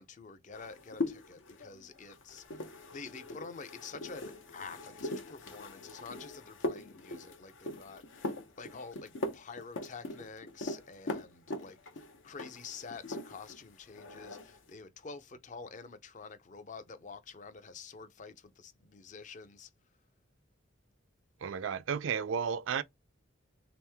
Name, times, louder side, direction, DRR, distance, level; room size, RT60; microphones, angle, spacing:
voice 1, 0.0-19.7, left 5 dB, 40° left, 0.5 m, -48 dB
sound 1, 0.5-13.6 13.9-14.6, left 1 dB, 75° left, 0.7 m, -41 dB
voice 2, 21.4-22.8, right 7 dB, 80° right, 0.4 m, -33 dB
3.5 x 3.0 x 3.4 m
head